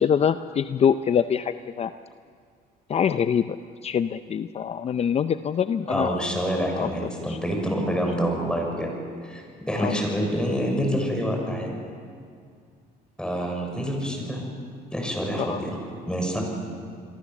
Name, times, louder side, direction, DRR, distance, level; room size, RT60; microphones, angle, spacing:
voice 1, 0.0-1.9 2.9-3.6 3.8-6.2 6.8-6.9 7.3-7.4 9.7-10.0 15.4-15.6, left 8 dB, 40° left, 11 dB, 0.6 m, -24 dB
voice 2, 5.9-8.9 9.2-11.8 13.2-14.4 14.9-16.4, equal, 5° left, 1 dB, 6.5 m, -27 dB
28.5 x 22.5 x 7.3 m, 2.2 s
cardioid pair, 110°, 17 cm